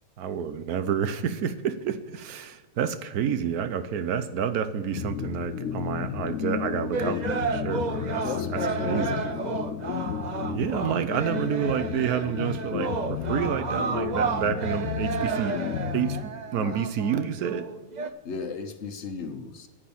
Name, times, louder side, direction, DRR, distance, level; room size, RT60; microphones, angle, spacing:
voice 1, 0.2-8.2 8.5-9.3 10.4-15.6 15.9-17.7, right 8 dB, 90° right, 11 dB, 1.3 m, -29 dB
sound 1, 4.9-16.8, left 9 dB, 70° left, 0.9 m, -33 dB
sound 2, 6.9-18.1, right 5 dB, 45° right, 0.5 m, -32 dB
voice 2, 8.2-9.7 16.5-16.8 18.2-19.7, left 4 dB, 55° left, 7 dB, 1.2 m, -35 dB
9.8 x 8.7 x 7.1 m, 1.2 s
omnidirectional pair, 1.5 m